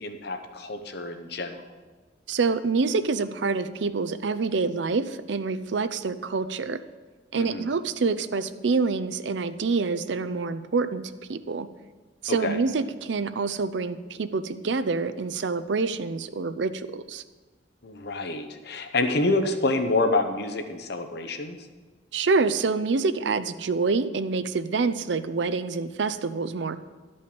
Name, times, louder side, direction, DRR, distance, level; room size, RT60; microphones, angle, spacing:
voice 1, 0.0-1.6 7.3-7.7 12.3-12.6 17.8-21.6, left 2 dB, 65° left, 7 dB, 0.9 m, -27 dB
voice 2, 2.3-6.8 7.3-11.7 12.2-17.2 22.1-26.8, right 4 dB, 75° right, 12 dB, 0.5 m, -26 dB
12.0 x 5.4 x 7.0 m, 1.3 s
head